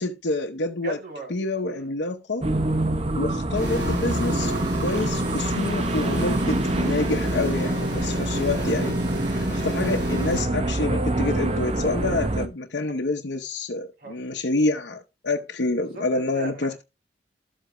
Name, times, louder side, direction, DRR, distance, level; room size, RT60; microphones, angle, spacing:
voice 1, 0.0-1.0 1.3-2.5 3.2-4.5 4.8-9.0 9.5-16.8, left 2 dB, 65° left, 0.8 m, -27 dB
voice 2, 0.8-1.4 1.7-1.9 2.7-3.1 12.8-12.9 14.0-14.2 15.8-16.8, right 2 dB, 60° right, 3.2 m, -39 dB
sound 1, 2.4-12.5, right 2 dB, 35° right, 0.9 m, -26 dB
sound 2, 3.5-10.4, left 1 dB, 85° right, 6.4 m, -30 dB
13.0 x 8.0 x 2.2 m
head